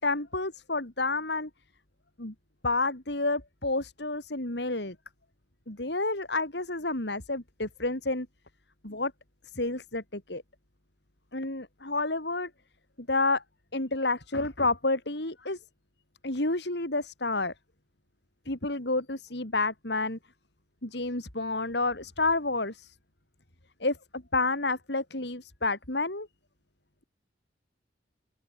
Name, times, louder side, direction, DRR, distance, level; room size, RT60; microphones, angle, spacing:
voice 1, 0.0-1.5 2.2-2.3 2.6-5.0 5.7-8.3 8.8-9.1 9.5-10.4 11.3-12.5 13.1-13.4 13.7-15.6 16.2-17.5 18.5-20.2 20.8-22.9 23.8-26.3, left 2 dB, 60° left, 3.5 m, -30 dB
open air
head